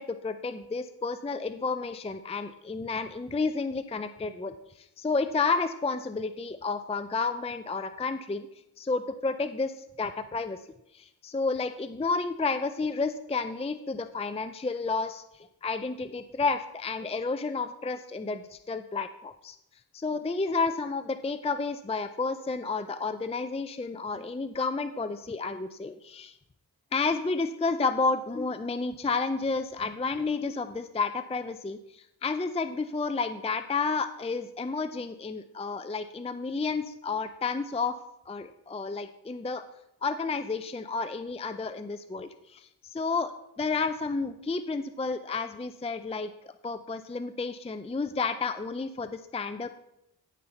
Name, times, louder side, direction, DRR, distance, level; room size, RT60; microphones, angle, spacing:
voice 1, 0.0-8.5 8.8-10.6 10.9-19.6 19.9-26.4 26.9-38.0 38.3-39.6 40.0-49.7, left 4 dB, 15° left, 10 dB, 0.4 m, -31 dB
16.5 x 5.5 x 4.4 m, 0.80 s
wide cardioid pair, 105°, 40 cm